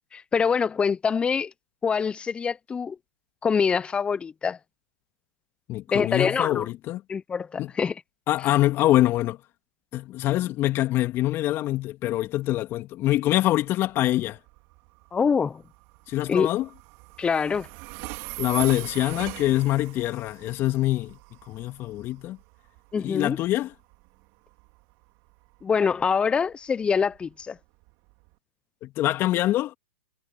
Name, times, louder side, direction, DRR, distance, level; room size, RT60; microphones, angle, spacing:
voice 1, 0.1-1.5 1.8-3.0 3.4-4.6 5.9-6.7 7.1-7.9 15.1-15.6 16.3-16.5 17.2-17.7 22.9-23.4 25.6-27.6, left 6 dB, 15° left, 0.8 m, -25 dB
voice 2, 5.7-7.0 7.6-7.7 8.3-9.4 9.9-14.4 16.1-16.7 18.4-21.2 21.5-22.4 23.0-23.7 28.8-29.7, left 15 dB, 35° left, 2.9 m, -24 dB
Train, 13.6-28.3, right 27 dB, 45° right, 3.7 m, -42 dB
hypercardioid pair, 115°, 7 cm